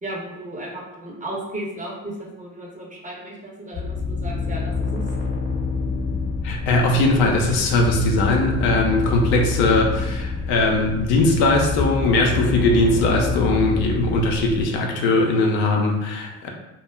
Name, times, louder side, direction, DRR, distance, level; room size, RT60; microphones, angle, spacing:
voice 1, 0.0-5.0, right 1 dB, 20° right, -3 dB, 0.7 m, -34 dB
sound 1, 3.7-14.7, left 4 dB, 35° left, 0.8 m, -27 dB
voice 2, 6.4-16.5, left 2 dB, 70° left, 0 dB, 0.6 m, -20 dB
2.2 x 2.1 x 3.3 m, 0.98 s
hypercardioid pair, 60°, 42 cm